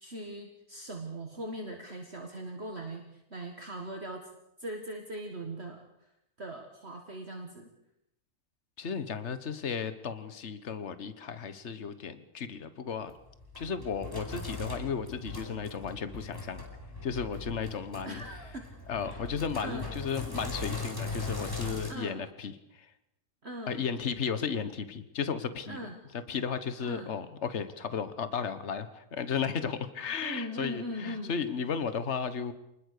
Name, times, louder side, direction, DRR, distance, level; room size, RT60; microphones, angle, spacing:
voice 1, 0.0-4.3 4.6-6.1 6.4-7.7 18.0-18.7 19.0-19.2 19.6-19.9 21.9-22.3 23.4-23.9 25.7-26.0 26.8-27.1 30.2-31.3, right 1 dB, 45° right, 3 dB, 2.1 m, -40 dB
voice 2, 8.8-13.1 13.6-16.6 17.0-18.2 18.9-22.9 23.7-25.8 26.3-32.5, left 6 dB, 50° left, 12 dB, 1.6 m, -34 dB
Sink (filling or washing), 13.1-21.9, left 2 dB, 15° left, 4.7 m, -40 dB
27.5 x 20.5 x 6.8 m, 0.82 s
omnidirectional pair, 1.6 m